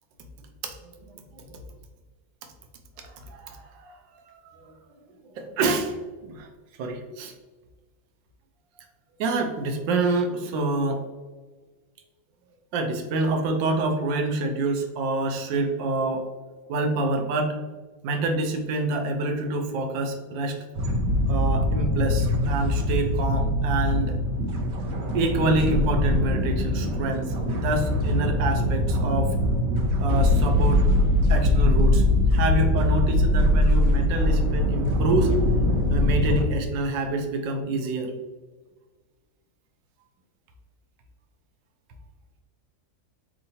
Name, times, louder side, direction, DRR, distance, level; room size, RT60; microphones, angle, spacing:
voice 1, 0.6-1.6 3.0-4.0 4.3-4.8 5.3-6.0 6.2-6.5 6.8-7.3 9.2-11.0 12.7-16.3 16.7-17.6 18.0-20.6 21.3-24.2 25.1-29.4 30.0-30.9 31.3-35.4 35.9-38.1, right 2 dB, 90° right, 4 dB, 1.3 m, -27 dB
sound 1, 20.7-36.5, left 1 dB, 60° right, 1.0 m, -22 dB
4.4 x 3.6 x 2.7 m, 1.3 s
omnidirectional pair, 1.9 m